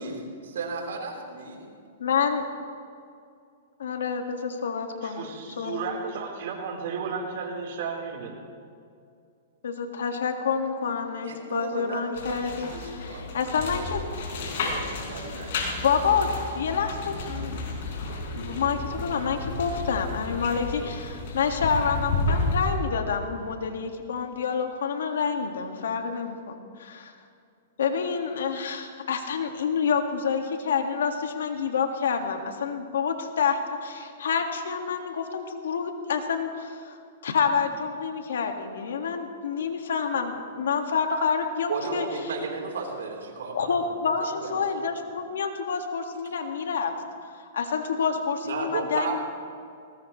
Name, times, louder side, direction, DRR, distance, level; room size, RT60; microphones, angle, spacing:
voice 1, 0.0-1.8 11.2-13.5 13.8-15.7 41.7-43.8 44.2-44.9 48.4-49.2, right 4 dB, 85° right, 1 dB, 3.8 m, -35 dB
voice 2, 2.0-2.4 3.8-5.3 5.6-5.8 9.6-14.0 15.8-16.3 16.6-17.7 18.3-27.1 27.8-37.0 37.2-42.1 43.5-46.9 47.5-49.2, left 6 dB, 85° left, 4 dB, 1.9 m, -28 dB
voice 3, 5.0-8.3, right 5 dB, 60° right, 0 dB, 4.0 m, -33 dB
sound 1, 12.2-22.7, left 2 dB, 65° left, 5.1 m, -32 dB
20.5 x 19.0 x 3.2 m, 2.4 s
hypercardioid pair, 140°, 0 cm